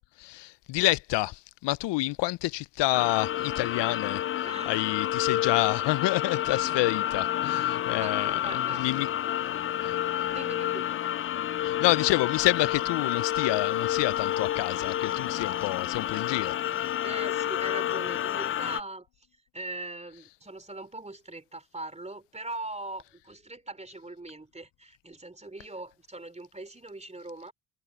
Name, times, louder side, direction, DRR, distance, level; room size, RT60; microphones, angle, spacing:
voice 1, 0.2-9.1 9.8-10.0 11.6-16.5, left 19 dB, 65° left, 0.9 m, -28 dB
sound 1, 2.9-18.8, left 12 dB, 30° left, 0.4 m, -29 dB
voice 2, 4.4-4.8 8.0-8.8 10.3-10.9 17.0-19.1 19.5-27.5, right 2 dB, 15° right, 3.1 m, -41 dB
Wind instrument woodwind instrument, 6.0-9.9, left 11 dB, 50° left, 1.4 m, -50 dB
hypercardioid pair, 50°, 46 cm